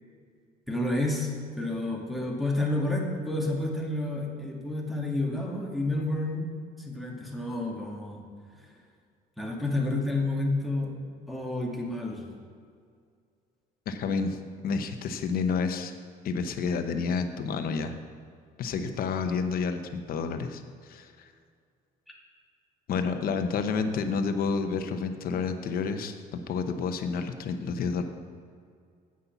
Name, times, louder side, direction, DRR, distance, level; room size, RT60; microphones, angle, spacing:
voice 1, 0.7-1.3 1.6-6.4 6.9-8.2 9.4-10.9 11.3-12.2, left 2 dB, ahead, -1 dB, 2.1 m, -30 dB
voice 2, 13.9-14.4 14.6-15.9 16.2-17.9 18.6-21.3 22.9-28.0, left 5 dB, 60° left, 7 dB, 1.0 m, -30 dB
9.6 x 8.7 x 5.8 m, 2.2 s
cardioid pair, 110°, 17 cm